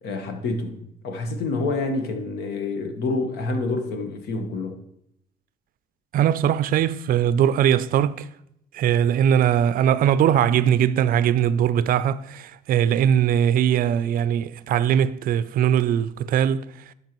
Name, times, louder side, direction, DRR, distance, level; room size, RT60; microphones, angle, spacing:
voice 1, 0.0-4.8, left 3 dB, 75° left, 1.2 m, -28 dB
voice 2, 6.1-8.3 8.7-16.6, right 9 dB, 55° right, 0.4 m, -20 dB
11.0 x 5.6 x 3.0 m
cardioid pair, 110°, 17 cm